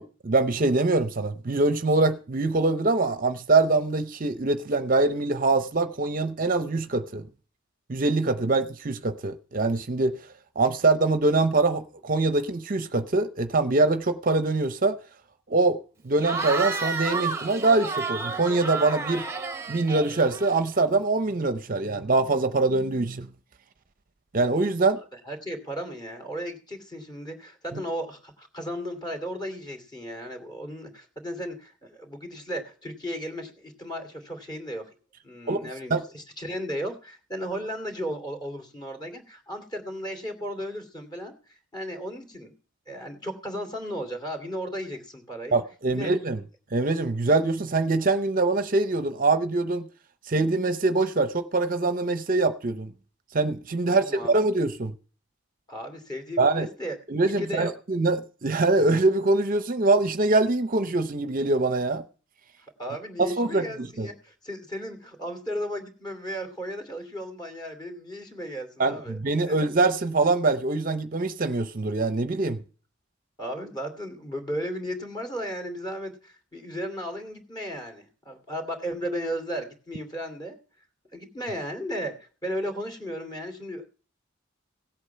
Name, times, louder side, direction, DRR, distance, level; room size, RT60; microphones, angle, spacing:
voice 1, 0.0-7.3 7.9-10.2 10.6-15.0 15.5-15.8 16.0-19.3 19.7-23.3 24.3-25.0 27.7-27.8 35.5-36.0 45.5-46.4 46.7-49.9 50.3-52.9 53.3-54.9 56.4-56.7 57.1-62.0 63.2-64.1 68.8-72.6, right 3 dB, 45° right, 0.6 m, -24 dB
Cheering / Crowd, 16.2-20.8, right 4 dB, 15° right, 1.0 m, -31 dB
voice 2, 25.1-34.9 35.2-42.5 42.9-45.6 45.9-46.1 53.9-54.4 55.7-57.0 57.2-57.7 62.8-69.2 69.5-69.6 73.4-80.6 81.1-83.8, equal, 20° left, 2.5 m, -35 dB
17.0 x 8.4 x 5.7 m
head